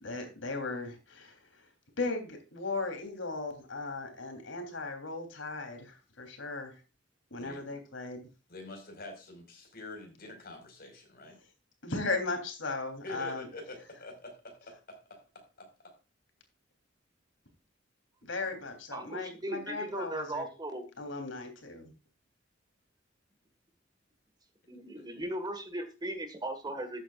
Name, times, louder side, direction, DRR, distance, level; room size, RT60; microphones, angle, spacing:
voice 1, 0.0-1.4 2.0-6.8 7.3-8.3 11.8-13.5 18.2-20.5 21.0-21.9, left 3 dB, 85° left, 5 dB, 3.4 m, -37 dB
voice 2, 8.5-11.4 13.0-15.9 24.9-25.0, left 2 dB, 50° left, 3 dB, 4.8 m, -46 dB
voice 3, 18.9-20.8 24.7-27.0, right 1 dB, 20° right, 8 dB, 1.6 m, -37 dB
14.0 x 8.9 x 2.4 m, 0.32 s
head